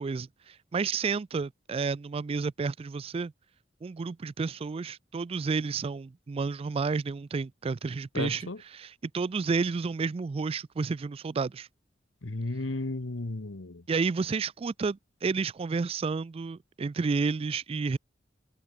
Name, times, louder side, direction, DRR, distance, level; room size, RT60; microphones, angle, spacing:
voice 1, 0.0-3.3 3.8-11.7 13.9-18.0, right 4 dB, 30° right, 0.3 m, -31 dB
voice 2, 8.1-8.6 12.2-13.8, left 2 dB, 90° left, 1.2 m, -34 dB
head